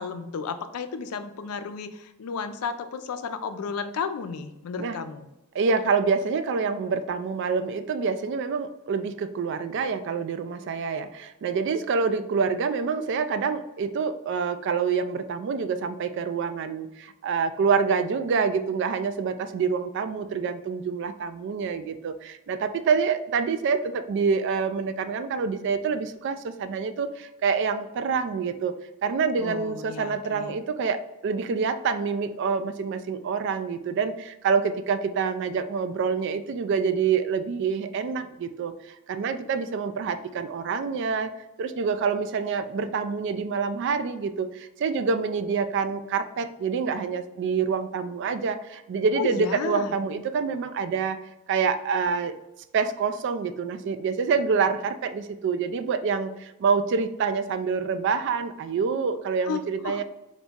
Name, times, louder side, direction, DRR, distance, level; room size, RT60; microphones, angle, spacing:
voice 1, 0.0-5.3 29.4-30.6 49.2-49.9 59.5-60.0, left 5 dB, 85° left, 10 dB, 0.4 m, -33 dB
voice 2, 5.5-28.8 29.0-41.3 41.6-51.2 51.5-52.3 52.7-60.0, right 5 dB, 55° right, 11 dB, 0.3 m, -27 dB
4.0 x 2.6 x 3.5 m, 0.96 s
head